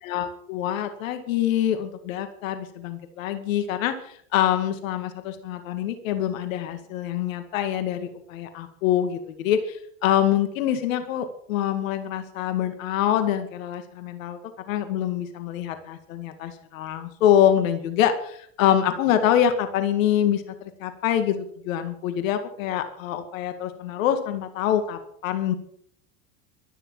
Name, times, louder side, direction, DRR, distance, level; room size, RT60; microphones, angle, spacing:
voice 1, 0.0-14.4 14.7-25.5, left 10 dB, 80° left, 8 dB, 2.2 m, -25 dB
13.5 x 12.0 x 7.6 m, 0.64 s
hypercardioid pair, 100°, 40 cm